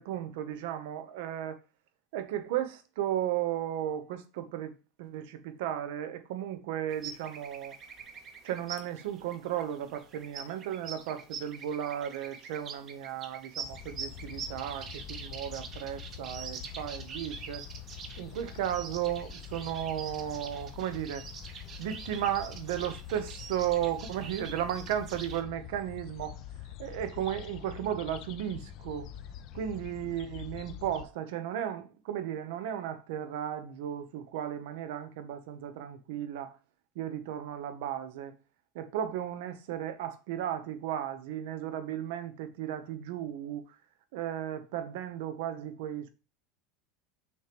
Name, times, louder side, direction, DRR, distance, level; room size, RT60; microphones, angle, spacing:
voice 1, 0.0-1.6 2.1-7.7 8.4-17.6 18.2-21.2 21.8-26.4 26.8-29.1 29.5-36.5 37.0-38.4 38.7-43.6 44.1-46.1, right 10 dB, 75° right, 0.8 m, -35 dB
sound 1, 6.9-25.4, right 6 dB, 35° right, 0.9 m, -45 dB
sound 2, 13.6-31.1, left 11 dB, 50° left, 0.4 m, -45 dB
6.3 x 3.0 x 5.0 m
supercardioid pair, 140°, 0 cm